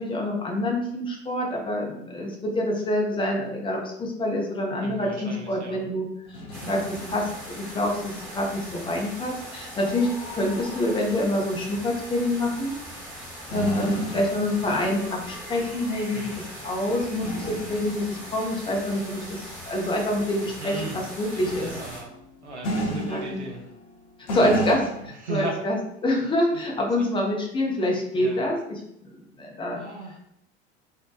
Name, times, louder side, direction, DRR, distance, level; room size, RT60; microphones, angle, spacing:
voice 1, 0.0-6.1 6.7-10.1 10.3-12.7 13.5-16.3 16.6-21.7 22.9-23.4 24.3-29.8, left 1 dB, 15° left, 0 dB, 0.5 m, -26 dB
voice 2, 4.8-5.8 13.5-14.2 16.1-16.3 20.6-21.0 21.3-22.1 22.4-23.6 25.2-25.6 26.5-26.6 28.1-28.4 29.7-30.2, right 3 dB, 90° right, 0 dB, 0.5 m, -36 dB
sound 1, 6.2-8.4 8.7-9.0 11.6-12.1 12.6-12.8 13.5-15.5 17.2-18.7 21.5-24.0 24.3-25.1, equal, 60° left, 0.7 m, -34 dB
sound 2, 6.5-22.0, equal, 5° right, 0.9 m, -40 dB
2.7 x 2.1 x 2.3 m, 0.76 s
figure-of-eight pair, 70°, 33 cm